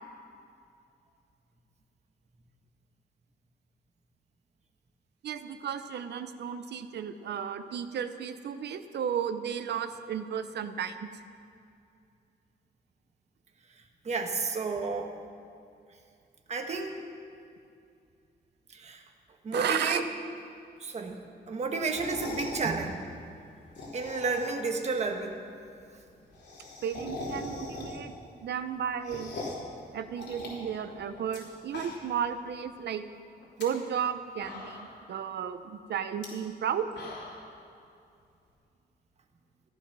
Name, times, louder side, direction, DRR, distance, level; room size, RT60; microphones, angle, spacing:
voice 1, 5.2-11.1 19.5-20.0 26.8-28.1 28.4-29.3 29.9-33.0 33.6-36.9, right 8 dB, 75° right, 10 dB, 0.8 m, -33 dB
voice 2, 14.0-15.1 16.5-17.0 18.7-19.0 19.4-20.0 20.8-21.2 21.5-23.0 23.9-25.4, right 4 dB, 40° right, 3 dB, 1.3 m, -31 dB
sound 1, 21.8-22.6 23.6-24.7 25.0-25.1 25.4-25.5 25.7-25.8 26.0-28.2 28.6-29.7 30.2-31.4 31.7-32.2 32.6-32.7 33.4-33.6 34.1-34.2 34.4-35.0 36.1-36.3 36.7-37.5, left 2 dB, 80° left, 3.2 m, -41 dB
14.5 x 11.5 x 6.1 m, 2.5 s
wide cardioid pair, 135°, 18 cm